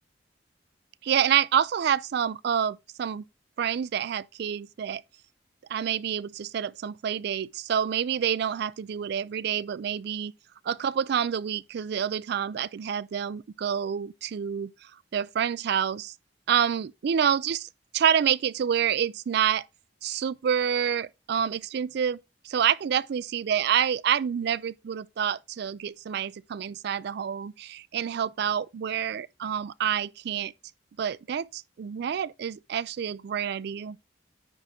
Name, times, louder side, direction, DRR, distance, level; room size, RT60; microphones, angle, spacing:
voice 1, 1.0-3.2 3.6-5.0 5.7-10.3 10.6-14.7 15.1-16.1 16.5-17.7 17.9-19.6 20.0-22.2 22.4-30.5 31.0-34.0, right 8 dB, 65° right, 0.4 m, -27 dB
9.9 x 3.6 x 4.3 m
head